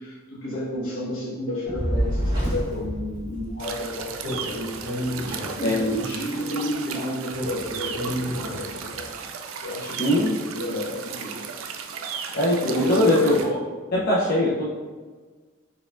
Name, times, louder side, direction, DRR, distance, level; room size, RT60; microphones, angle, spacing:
voice 1, 0.0-9.1 9.6-11.5 12.6-13.4, equal, 65° left, -6 dB, 1.3 m, -31 dB
Fire, 1.7-4.1, equal, 20° right, 1.5 m, -27 dB
sound 1, 3.6-13.5, right 6 dB, 80° right, 0.4 m, -35 dB
Speech, 4.2-6.0 7.3-9.1, equal, 50° right, 0.9 m, -32 dB
voice 2, 5.6-6.0 10.0-10.4 12.3-13.6 13.9-14.7, left 1 dB, 45° left, -6 dB, 0.6 m, -21 dB
4.2 x 3.5 x 2.4 m, 1.4 s
head